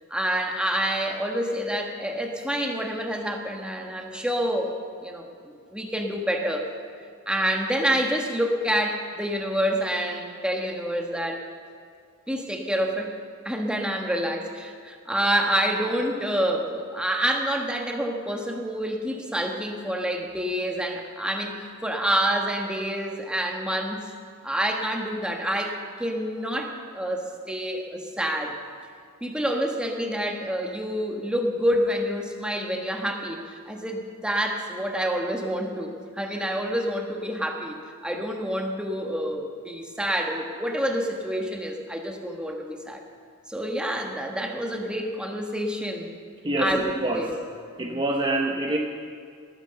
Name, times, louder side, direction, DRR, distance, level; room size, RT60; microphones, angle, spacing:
voice 1, 0.1-5.3 5.7-6.7 7.3-11.4 12.3-13.1 13.4-24.0 24.4-28.6 29.2-43.0 43.5-46.1 46.6-47.3, equal, 5° right, 2 dB, 1.3 m, -27 dB
voice 2, 46.4-47.4 47.8-48.8, right 1 dB, 20° right, 1 dB, 0.8 m, -26 dB
19.0 x 9.7 x 6.8 m, 2.3 s
head